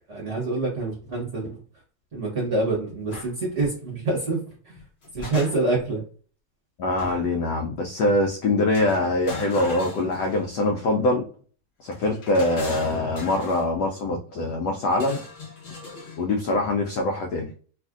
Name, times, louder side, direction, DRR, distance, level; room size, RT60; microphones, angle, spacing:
voice 1, 0.1-1.5 2.1-4.4 4.6-4.8 5.1-6.0, right 2 dB, 45° right, -3 dB, 1.1 m, -26 dB
sound 1, 3.1-3.3 4.7-5.9 7.0-7.4 8.7-10.6 11.9-13.7 14.9-16.2, left 3 dB, 55° left, 0.7 m, -39 dB
voice 2, 6.8-11.2 11.8-15.2 16.2-17.5, left 2 dB, 85° left, 1 dB, 0.9 m, -23 dB
3.2 x 2.4 x 2.4 m, 0.41 s
omnidirectional pair, 2.3 m